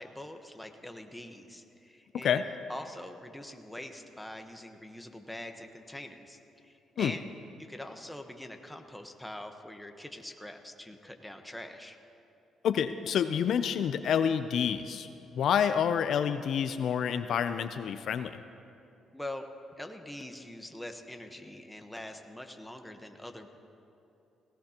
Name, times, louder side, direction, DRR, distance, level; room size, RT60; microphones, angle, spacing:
voice 1, 0.0-7.2 7.6-12.0 19.1-19.4 19.8-23.5, left 1 dB, 5° left, 5 dB, 1.1 m, -44 dB
voice 2, 12.6-15.1 15.3-18.4, left 8 dB, 70° left, 10 dB, 0.4 m, -28 dB
18.5 x 17.0 x 2.9 m, 2.8 s
cardioid pair, 90°, 0 cm